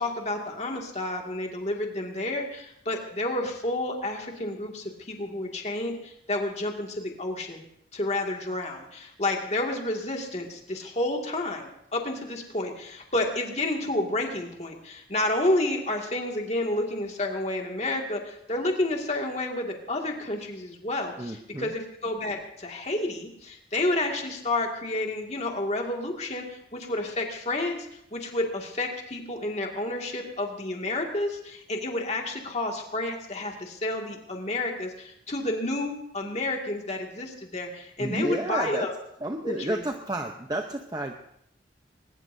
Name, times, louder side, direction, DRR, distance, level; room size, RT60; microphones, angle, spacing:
voice 1, 0.0-7.6 7.9-38.9 39.4-39.8, left 2 dB, 35° left, 1 dB, 2.2 m, -30 dB
voice 2, 21.2-21.7 38.0-38.9 39.2-41.1, right 1 dB, 20° right, 4 dB, 0.8 m, -31 dB
21.5 x 20.0 x 2.7 m, 0.73 s
head